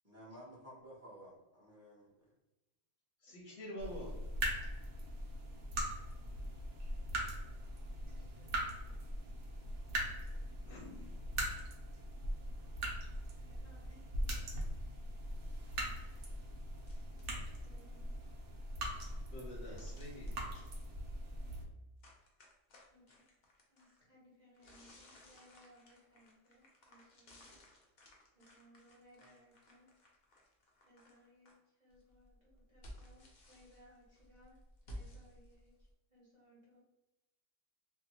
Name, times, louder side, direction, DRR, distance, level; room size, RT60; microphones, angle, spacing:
voice 1, 0.0-2.3, equal, 15° right, -6 dB, 0.5 m, -54 dB
voice 2, 3.2-4.2 10.6-11.2 19.3-20.3, equal, 55° left, -4 dB, 0.7 m, -47 dB
sound 1, 3.8-21.6, right 1 dB, 65° right, 0.8 m, -41 dB
voice 3, 8.0-9.3 10.1-10.5 13.5-14.4 17.6-18.1 22.9-23.3 23.7-27.6 28.3-29.9 30.8-34.6 34.9-35.7 36.1-36.8, equal, 35° right, -7 dB, 0.9 m, -65 dB
sound 2, 16.8-17.4 19.8-20.8 22.0-24.0 24.5-31.5 31.9-35.9, equal, 90° left, 0.4 m, -57 dB
2.6 x 2.1 x 2.8 m, 1.0 s
omnidirectional pair, 1.5 m